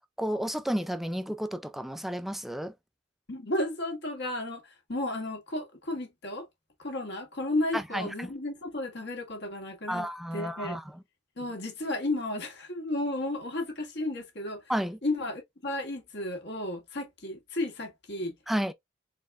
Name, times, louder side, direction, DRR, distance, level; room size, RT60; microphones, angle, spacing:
voice 1, 0.2-2.7 7.7-8.3 9.9-10.8 14.7-15.0 18.5-18.7, equal, ahead, 0.3 m, -31 dB
voice 2, 3.3-6.5 6.8-10.7 11.4-14.6 15.0-18.3, left 1 dB, 60° left, 1.5 m, -33 dB
4.1 x 3.4 x 2.3 m
head